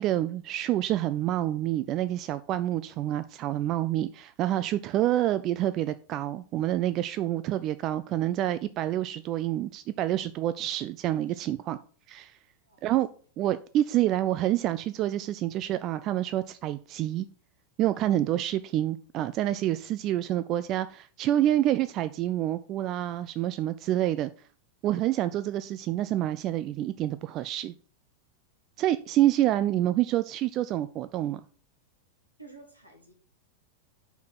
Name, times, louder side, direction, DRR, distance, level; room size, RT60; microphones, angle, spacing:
voice 1, 0.0-11.8 12.1-12.4 12.8-13.1 13.4-17.3 17.8-24.3 24.8-27.7 28.8-31.4, right 13 dB, 35° right, 13 dB, 0.3 m, -27 dB
voice 2, 32.4-33.1, right 3 dB, 85° right, 2 dB, 1.9 m, -52 dB
5.7 x 4.6 x 5.9 m, 0.41 s
figure-of-eight pair, 90°, 0 cm